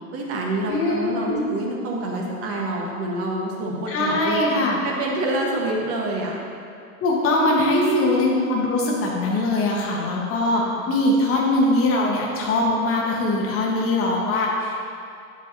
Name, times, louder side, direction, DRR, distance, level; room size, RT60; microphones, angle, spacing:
voice 1, 0.1-4.4 4.8-6.4 7.6-8.1 10.8-10.9, right 1 dB, 30° right, -1 dB, 1.6 m, -26 dB
voice 2, 0.7-1.4 3.9-4.8 7.0-10.6 10.9-14.8, left 2 dB, 30° left, -2 dB, 1.7 m, -22 dB
9.5 x 7.9 x 2.9 m, 2.6 s
figure-of-eight pair, 90°, 44 cm